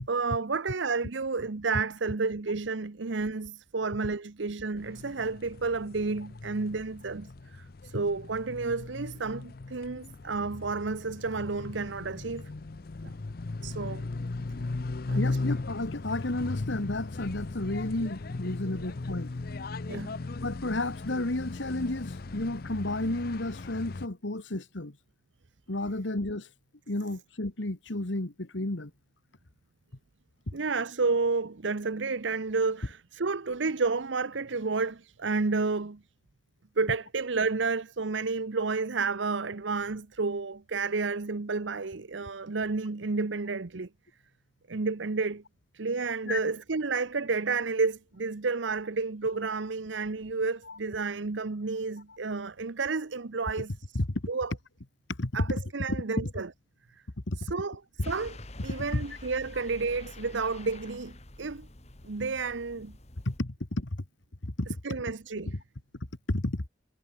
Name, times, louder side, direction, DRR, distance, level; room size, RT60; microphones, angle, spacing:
voice 1, 0.1-12.5 13.0-13.1 13.6-14.0 15.1-15.4 18.6-18.7 19.9-20.1 30.5-36.0 36.8-43.9 44.7-45.4 45.7-53.7 54.3-54.5 55.3-56.5 57.4-57.8 58.1-58.4 58.6-61.7 62.0-63.0 64.8-65.6, right 4 dB, 75° right, 0.9 m, -31 dB
sound 1, 4.8-24.1, left 3 dB, 50° left, 0.6 m, -37 dB
voice 2, 15.2-19.3 20.4-25.0 25.7-26.5 26.9-28.9 46.3-46.4 50.7-50.8 54.0-54.1 55.2-55.3 55.9-56.3 57.3-57.5 58.9-59.0 63.3-64.0 64.4-64.8 65.9-66.7, left 2 dB, 75° left, 1.8 m, -32 dB
sound 2, 58.0-63.4, left 2 dB, 35° left, 2.0 m, -47 dB
head